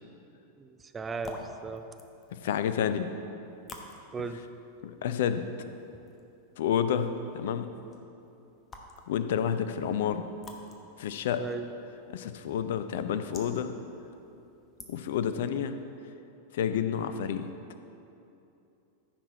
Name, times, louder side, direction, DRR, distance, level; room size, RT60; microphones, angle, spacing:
voice 1, 0.6-1.8 4.1-4.4 11.4-11.7, right 4 dB, 15° right, 9 dB, 0.5 m, -36 dB
sound 1, 0.9-15.3, left 2 dB, 20° left, 1.1 m, -52 dB
voice 2, 2.3-3.1 4.8-5.5 6.6-7.7 9.1-10.3 11.0-11.4 12.1-13.7 14.9-15.8 16.5-17.5, left 8 dB, 55° left, 10 dB, 0.5 m, -29 dB
14.5 x 6.0 x 4.1 m, 2.8 s
figure-of-eight pair, 90°, 0 cm